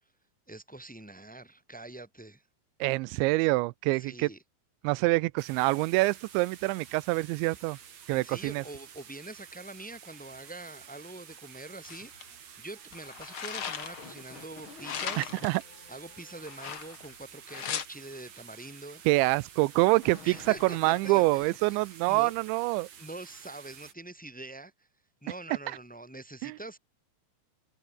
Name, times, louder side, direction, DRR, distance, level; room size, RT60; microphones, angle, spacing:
voice 1, 0.5-2.4 4.0-4.4 8.1-15.3 15.9-19.0 20.2-20.8 21.0-21.8 22.1-22.3 23.0-24.7 25.2-26.8, right 2 dB, ahead, 3.1 m, -44 dB
voice 2, 2.8-4.3 4.8-7.8 8.1-8.6 15.2-15.6 19.1-22.9 26.4-26.6, right 23 dB, 90° right, 3.0 m, -26 dB
sound 1, 5.4-23.9, right 8 dB, 45° right, 2.9 m, -51 dB
sound 2, 11.8-12.2 12.9-14.1 14.8-15.6 16.4-17.1 17.5-17.9, left 8 dB, 75° left, 1.2 m, -37 dB
sound 3, 13.6-16.8 19.6-21.7, left 5 dB, 30° left, 3.1 m, -50 dB
omnidirectional pair, 5.1 m